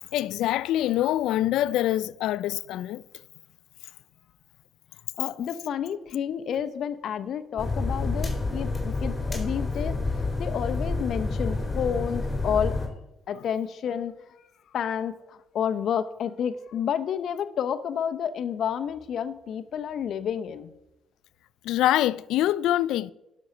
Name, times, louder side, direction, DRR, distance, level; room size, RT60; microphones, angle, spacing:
voice 1, 0.1-3.0 21.6-23.1, left 13 dB, 90° left, 0.3 m, -25 dB
voice 2, 5.2-10.0 10.4-12.9 13.3-14.1 14.7-20.7, left 8 dB, 70° left, 0.7 m, -30 dB
sound 1, 7.6-12.9, left 3 dB, 20° left, 3.0 m, -29 dB
11.0 x 6.3 x 6.5 m
cardioid pair, 90°, 0 cm